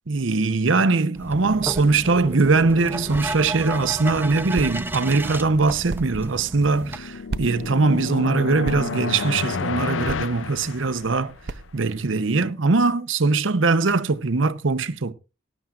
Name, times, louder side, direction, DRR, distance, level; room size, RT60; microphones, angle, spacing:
voice 1, 0.1-11.3 11.7-15.1, right 3 dB, 85° right, 0.8 m, -21 dB
sound 1, 1.1-7.0, right 1 dB, 10° right, 0.7 m, -33 dB
sound 2, 1.2-12.1, right 3 dB, 55° right, 0.6 m, -39 dB
sound 3, 6.5-11.5, left 5 dB, 85° left, 0.5 m, -31 dB
18.0 x 12.0 x 2.5 m
head